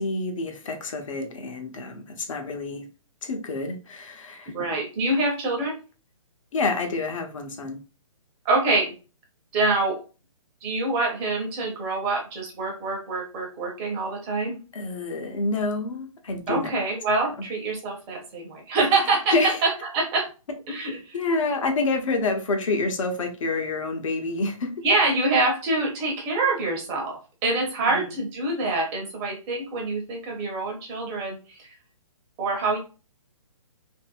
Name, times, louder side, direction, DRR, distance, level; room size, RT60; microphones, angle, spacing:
voice 1, 0.0-2.9 3.2-4.5 6.5-7.8 14.7-16.7 19.3-19.6 21.1-24.7 27.9-28.1, left 3 dB, 65° left, 0.7 m, -28 dB
voice 2, 4.5-5.7 8.4-8.9 9.5-10.0 10.6-14.6 16.5-20.3 20.7-21.2 24.8-31.7 32.4-32.8, right 3 dB, 25° right, 0.8 m, -25 dB
2.6 x 2.1 x 2.4 m
hypercardioid pair, 145°, 18 cm